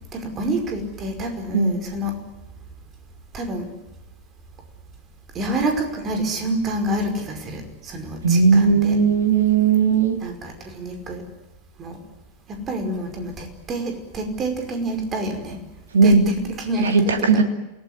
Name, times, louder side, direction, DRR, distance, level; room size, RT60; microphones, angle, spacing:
voice 1, 0.1-2.2 3.3-3.7 5.3-9.0 10.2-11.2 11.8-12.0 12.5-15.6 16.0-17.4, right 1 dB, 25° right, 6 dB, 5.3 m, -28 dB
voice 2, 8.2-10.2 15.9-16.3 16.8-17.4, right 5 dB, 65° right, 7 dB, 2.3 m, -17 dB
28.5 x 19.5 x 9.7 m, 1.1 s
figure-of-eight pair, 90°, 0 cm